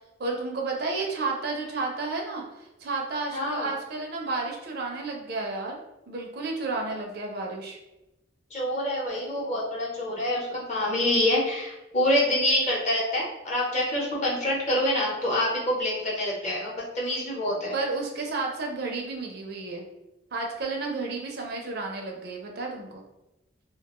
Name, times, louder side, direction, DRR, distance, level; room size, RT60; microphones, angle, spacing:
voice 1, 0.2-5.8 6.1-7.8 17.7-19.8 20.3-23.0, right 3 dB, 55° right, 1 dB, 0.5 m, -32 dB
voice 2, 3.3-3.7 8.5-17.7, left 1 dB, 40° left, -4 dB, 0.8 m, -26 dB
2.3 x 2.2 x 2.9 m, 0.97 s
head